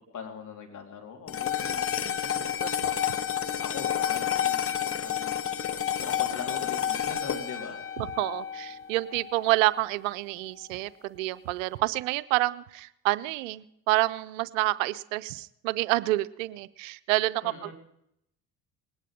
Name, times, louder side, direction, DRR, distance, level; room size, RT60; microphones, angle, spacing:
voice 1, 0.1-1.9 2.2-2.5 3.6-5.5 6.0-7.8 17.4-17.7, left 6 dB, 50° left, 2 dB, 3.5 m, -41 dB
sound 1, 1.3-9.8, left 9 dB, 35° left, 1.0 m, -30 dB
voice 2, 8.0-17.7, right 19 dB, 85° right, 15 dB, 0.6 m, -28 dB
20.5 x 9.6 x 5.1 m, 0.77 s
hypercardioid pair, 70°, 38 cm